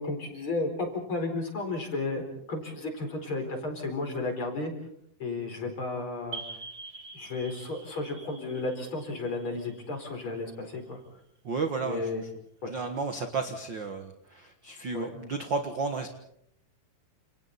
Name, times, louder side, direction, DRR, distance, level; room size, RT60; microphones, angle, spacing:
voice 1, 0.0-4.7 5.2-6.4 7.1-11.0 11.8-12.2 12.6-12.7 14.9-15.1, left 2 dB, 35° left, 4 dB, 5.0 m, -33 dB
sound 1, 6.3-10.8, right 4 dB, 25° right, 1.5 m, -45 dB
voice 2, 11.4-12.1 12.6-16.1, right 4 dB, 50° right, 6 dB, 1.5 m, -32 dB
30.0 x 28.0 x 4.2 m, 0.71 s
omnidirectional pair, 3.9 m